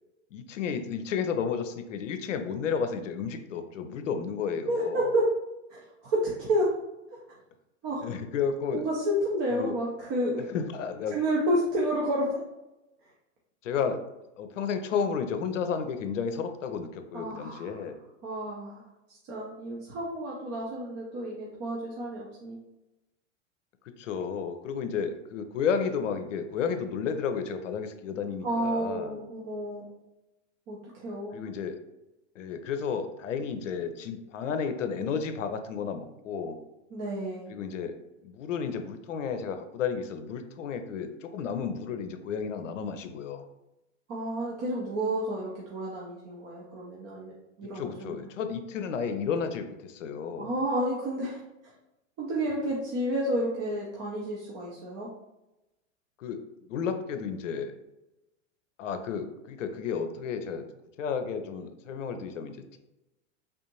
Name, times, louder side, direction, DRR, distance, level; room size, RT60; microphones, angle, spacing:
voice 1, 0.3-5.0 8.0-8.9 9.5-9.8 10.4-11.2 13.6-14.0 14.4-18.0 24.0-29.2 31.3-31.8 32.4-36.6 37.5-38.0 38.2-43.5 47.7-50.5 56.2-57.8 58.8-60.6 61.0-62.8, left 6 dB, 80° left, 8 dB, 0.6 m, -32 dB
voice 2, 4.7-5.3 5.7-6.8 7.8-8.1 8.7-10.4 11.1-12.3 17.1-17.8 18.2-18.8 19.1-22.6 28.4-29.8 30.7-31.4 36.9-37.5 44.1-47.3 47.6-48.2 50.4-51.4 52.2-55.1, right 1 dB, 40° right, -4 dB, 0.8 m, -30 dB
3.5 x 2.5 x 2.9 m, 0.95 s
hypercardioid pair, 100°, 37 cm